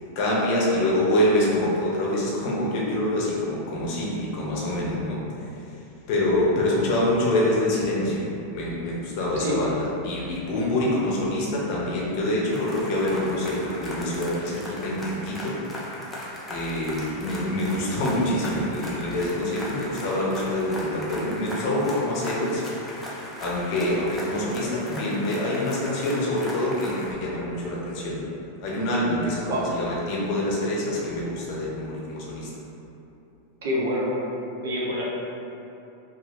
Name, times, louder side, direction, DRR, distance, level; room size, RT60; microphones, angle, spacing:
voice 1, 0.2-5.2 6.1-8.3 8.5-15.6 16.5-23.0 23.4-28.2 28.6-32.5, left 1 dB, 45° left, -5 dB, 0.7 m, -26 dB
sound 1, 12.5-27.1, left 1 dB, 5° left, 0.4 m, -38 dB
voice 2, 33.6-34.1 34.6-35.0, equal, 85° right, -6 dB, 0.8 m, -26 dB
2.6 x 2.5 x 3.1 m, 2.8 s
supercardioid pair, 160°, 0 cm